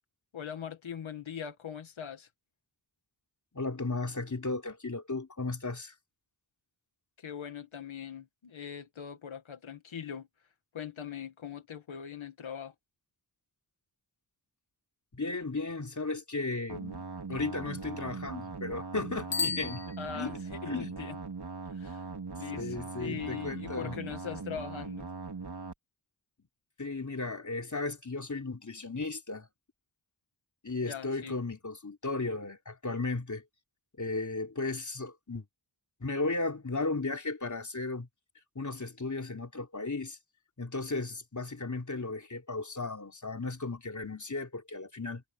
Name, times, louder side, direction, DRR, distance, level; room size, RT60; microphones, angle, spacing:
voice 1, 0.3-2.3 7.2-10.3 10.7-12.7 20.0-21.2 21.7-22.0 22.3-25.1 30.9-31.4, left 8 dB, 85° left, 1.8 m, -41 dB
voice 2, 3.5-5.9 15.1-17.0 17.3-19.8 20.1-20.4 20.7-20.9 22.5-24.0 26.8-29.5 30.6-33.4 34.0-35.5 36.0-38.1 38.6-40.2 40.6-45.2, left 3 dB, 40° left, 3.7 m, -35 dB
sound 1, 16.7-25.7, right 4 dB, 55° right, 4.1 m, -40 dB
Bicycle bell, 19.3-20.6, left 4 dB, 65° left, 1.5 m, -35 dB
cardioid pair, 50°, 46 cm